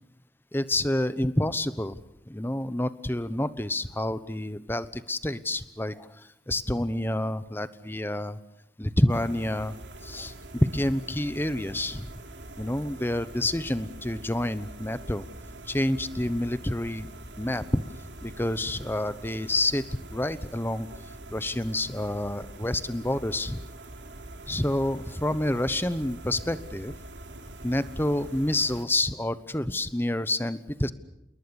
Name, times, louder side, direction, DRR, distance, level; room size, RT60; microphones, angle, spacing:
voice 1, 0.5-2.0 2.3-6.2 6.5-8.4 8.8-9.7 10.0-12.1 12.6-15.2 15.7-17.1 17.4-17.8 18.2-20.9 21.3-23.6 24.5-26.9 27.6-30.9, left 1 dB, 10° left, 14 dB, 1.0 m, -28 dB
sound 1, 9.1-28.9, right 1 dB, 85° right, 3.2 m, -44 dB
28.5 x 21.5 x 7.1 m, 0.81 s
head